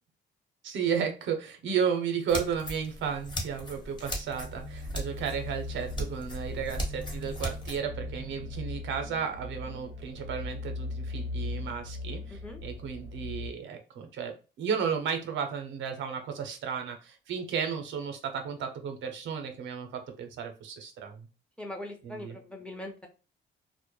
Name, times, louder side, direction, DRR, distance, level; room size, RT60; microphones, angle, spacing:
voice 1, 0.6-21.3 22.0-22.4, right 7 dB, 75° right, 5 dB, 0.6 m, -33 dB
sound 1, 2.3-7.8, equal, 25° left, 1.0 m, -38 dB
sound 2, 4.0-13.5, left 2 dB, 90° left, 0.8 m, -39 dB
voice 2, 12.3-12.6 21.6-23.1, left 1 dB, 5° left, 3 dB, 0.6 m, -41 dB
2.1 x 2.0 x 3.0 m, 0.34 s
cardioid pair, 90°, 20 cm